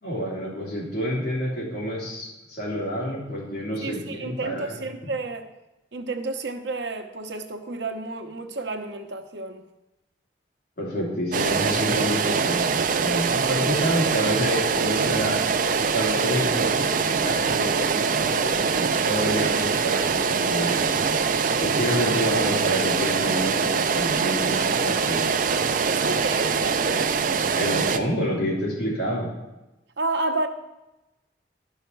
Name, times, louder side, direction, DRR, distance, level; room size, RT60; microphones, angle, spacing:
voice 1, 0.0-4.8 10.8-15.4 15.9-21.0 21.6-25.4 27.5-29.3, equal, 60° left, -4 dB, 3.0 m, -28 dB
voice 2, 3.8-5.5 5.9-9.6 25.7-27.0 30.0-30.5, right 2 dB, 80° right, 7 dB, 0.8 m, -31 dB
sound 1, 11.3-28.0, right 5 dB, 50° right, 0.5 m, -23 dB
11.5 x 5.7 x 4.5 m, 1.0 s
head